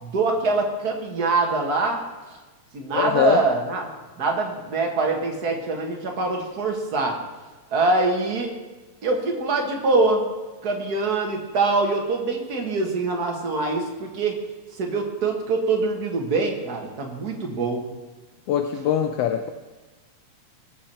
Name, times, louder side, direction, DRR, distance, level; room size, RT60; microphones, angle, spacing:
voice 1, 0.0-2.0 2.7-3.9 4.2-7.2 7.7-8.5 9.0-10.2 10.6-14.4 14.8-17.9, right 3 dB, 40° right, 2 dB, 1.6 m, -24 dB
voice 2, 2.9-3.4 18.5-19.5, left 10 dB, 75° left, 6 dB, 1.5 m, -22 dB
19.5 x 7.2 x 4.4 m, 1.2 s
omnidirectional pair, 3.4 m